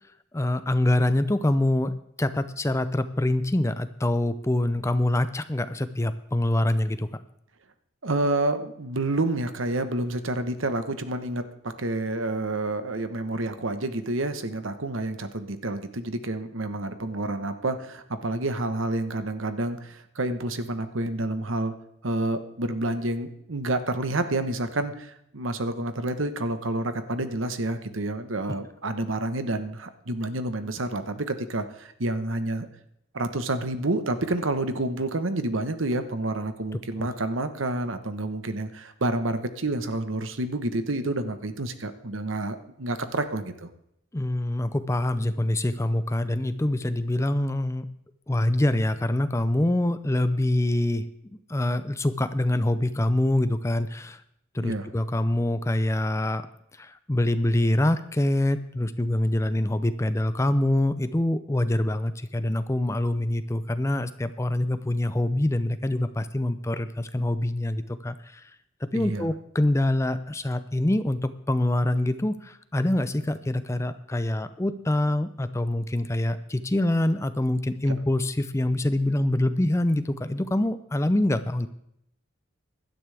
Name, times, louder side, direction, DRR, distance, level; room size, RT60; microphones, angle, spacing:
voice 1, 0.3-7.1 37.0-37.1 44.1-47.9 48.3-51.1 51.5-54.2 54.5-56.4 56.8-68.5 68.9-81.7, left 1 dB, 15° left, 12 dB, 0.5 m, -25 dB
voice 2, 8.0-21.7 22.0-32.7 33.1-43.7 54.6-54.9 68.9-69.3, right 2 dB, 75° right, 10 dB, 1.2 m, -29 dB
16.5 x 12.0 x 3.4 m, 0.76 s
head